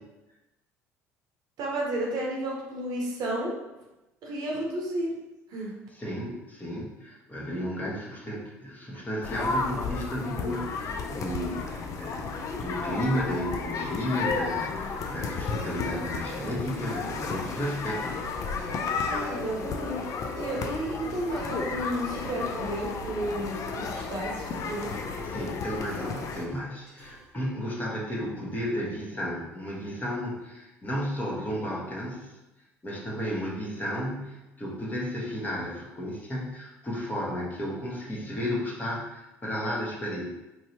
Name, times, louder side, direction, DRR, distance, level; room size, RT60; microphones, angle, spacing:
voice 1, 1.6-3.6 4.2-5.2 5.5-5.7 19.0-20.0 20.4-24.9, right 1 dB, 55° right, -2 dB, 0.8 m, -32 dB
voice 2, 5.9-18.2 25.2-32.3 32.8-40.3, equal, 20° left, -4 dB, 1.1 m, -33 dB
sound 1, 9.2-26.4, left 4 dB, 45° left, 0.4 m, -33 dB
sound 2, 13.3-27.4, right 2 dB, 75° left, 1.3 m, -53 dB
3.1 x 2.7 x 2.7 m, 1.0 s
hypercardioid pair, 60°, 8 cm